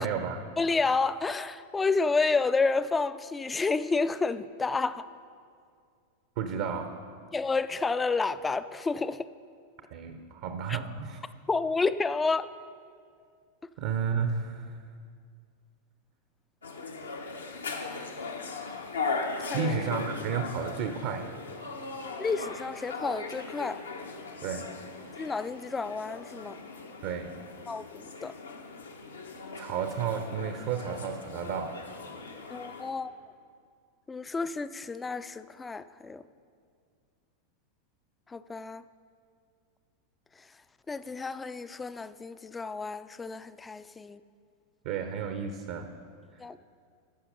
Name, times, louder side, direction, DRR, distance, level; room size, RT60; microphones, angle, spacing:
voice 1, 0.0-0.4 6.4-7.0 9.9-11.2 13.8-14.7 19.5-21.3 24.4-24.7 27.0-27.4 29.6-31.8 32.4-32.6 44.8-45.9 46.3-46.5, right 6 dB, 50° right, 7 dB, 0.6 m, -32 dB
voice 2, 0.6-5.1 7.3-9.3 10.7-10.8 11.5-12.5 19.4-19.7 22.2-23.8 25.2-26.6 27.7-28.3 32.5-33.1 34.1-36.2 38.3-38.8 40.9-44.2 46.4-46.6, left 4 dB, 15° left, 15 dB, 0.3 m, -30 dB
sound 1, 16.6-32.9, left 4 dB, 75° left, 0.8 m, -39 dB
14.0 x 5.8 x 5.3 m, 2.2 s
figure-of-eight pair, 90°, 0 cm